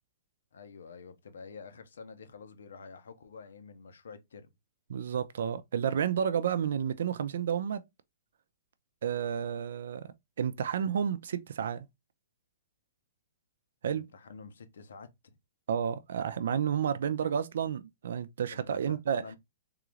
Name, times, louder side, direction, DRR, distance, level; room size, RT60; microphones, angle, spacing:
voice 1, 0.5-4.5 13.9-15.3 18.5-19.4, left 5 dB, 85° left, 0.8 m, -48 dB
voice 2, 4.9-7.8 9.0-11.9 13.8-14.1 15.7-19.4, right 8 dB, 70° right, 0.5 m, -31 dB
3.7 x 2.5 x 3.1 m
hypercardioid pair, 155°, 0 cm